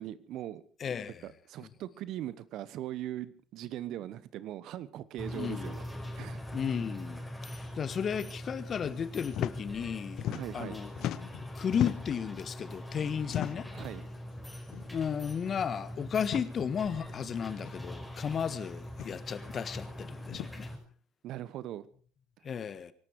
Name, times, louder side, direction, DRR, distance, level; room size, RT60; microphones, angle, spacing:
voice 1, 0.0-0.6 1.2-5.8 6.2-6.4 10.3-10.8 13.7-14.1 21.2-21.8, right 13 dB, 60° right, 1.1 m, -40 dB
voice 2, 0.8-1.3 1.6-1.7 5.3-5.7 6.5-10.2 10.5-10.9 11.5-13.7 14.9-20.7 22.4-22.9, left 7 dB, 40° left, 1.4 m, -34 dB
sound 1, 5.2-20.8, left 1 dB, 10° left, 4.9 m, -42 dB
sound 2, 9.3-9.6 9.8-10.7 10.9-12.2 13.2-13.8 14.7-14.9 15.2-15.3 16.2-16.5 17.6-17.7 18.9-19.2 20.3-20.5, left 13 dB, 60° left, 0.7 m, -36 dB
24.5 x 12.0 x 4.8 m
hypercardioid pair, 70°, 0 cm